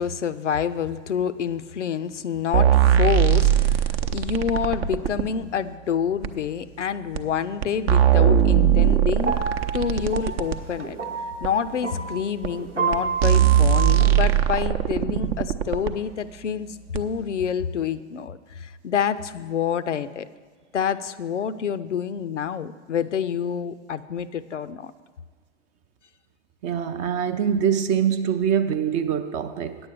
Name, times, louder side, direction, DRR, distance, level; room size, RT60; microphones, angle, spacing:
voice 1, 0.0-9.4 9.7-11.0 11.4-20.3 20.7-24.9 27.0-27.1, left 7 dB, 80° left, 13 dB, 0.5 m, -27 dB
sound 1, 2.5-5.3 6.2-6.3 7.1-7.2 7.6-10.6 11.4-11.5 12.4-12.5 12.9-13.0 13.2-15.9 16.9-17.0, right 10 dB, 60° right, 0.7 m, -19 dB
sound 2, 9.2-14.4, right 5 dB, 85° right, 0.9 m, -30 dB
voice 2, 26.6-29.8, right 8 dB, 20° right, 9 dB, 0.3 m, -24 dB
9.6 x 7.8 x 6.4 m, 1.5 s
figure-of-eight pair, 90°, 36 cm